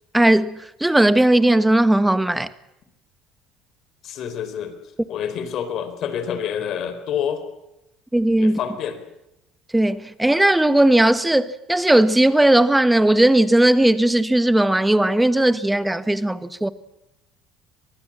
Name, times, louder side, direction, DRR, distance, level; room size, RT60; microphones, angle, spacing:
voice 1, 0.1-2.5 8.1-8.6 9.7-16.7, right 1 dB, 10° right, 1.5 m, -17 dB
voice 2, 4.0-4.8 5.1-7.4 8.4-9.0, left 8 dB, 55° left, 4.3 m, -27 dB
25.0 x 19.5 x 7.5 m
supercardioid pair, 80°, 0 cm